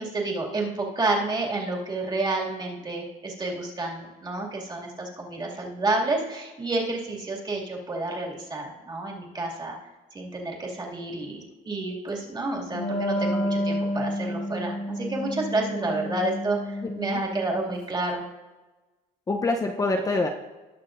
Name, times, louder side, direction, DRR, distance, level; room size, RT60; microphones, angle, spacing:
voice 1, 0.0-9.8 10.1-18.2, right 2 dB, 25° right, -2 dB, 2.3 m, -30 dB
Wind instrument woodwind instrument, 12.7-17.8, equal, 50° left, 1.9 m, -30 dB
voice 2, 16.8-17.2 19.3-20.3, left 2 dB, 20° left, 2 dB, 0.7 m, -26 dB
19.0 x 6.4 x 2.5 m, 1.2 s
cardioid pair, 110°, 17 cm